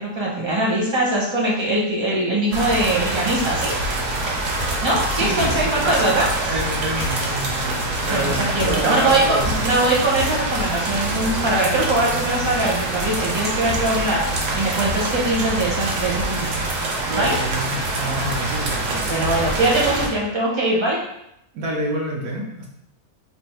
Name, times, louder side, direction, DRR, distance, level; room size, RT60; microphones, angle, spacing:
voice 1, 0.0-3.7 4.8-6.5 8.1-14.2 14.5-16.7 17.2-17.3 19.1-21.0, right 2 dB, 25° right, -4 dB, 0.6 m, -22 dB
sound 1, 2.5-20.1, right 2 dB, 60° right, 0.9 m, -25 dB
sound 2, 4.6-7.5 7.8-10.7, left 3 dB, 60° left, 0.7 m, -33 dB
voice 2, 5.2-6.1 6.4-9.6 17.1-19.1 21.5-22.7, right 1 dB, 75° right, -1 dB, 1.3 m, -27 dB
3.1 x 2.6 x 4.4 m, 0.81 s
omnidirectional pair, 1.6 m